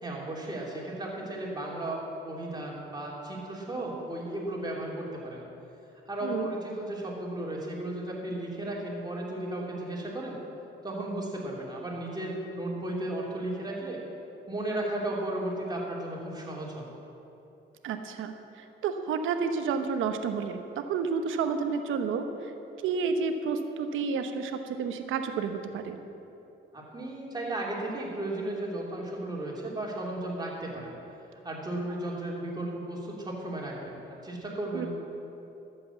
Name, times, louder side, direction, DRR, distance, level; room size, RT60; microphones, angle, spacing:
voice 1, 0.0-5.4 6.1-10.4 10.8-14.0 14.5-16.9 26.7-30.9 31.4-34.9, right 1 dB, 20° right, -3 dB, 3.1 m, -35 dB
voice 2, 17.8-22.5 22.8-26.0 34.7-34.9, right 5 dB, 85° right, 7 dB, 1.0 m, -30 dB
12.5 x 7.8 x 7.1 m, 2.9 s
cardioid pair, 90°, 20 cm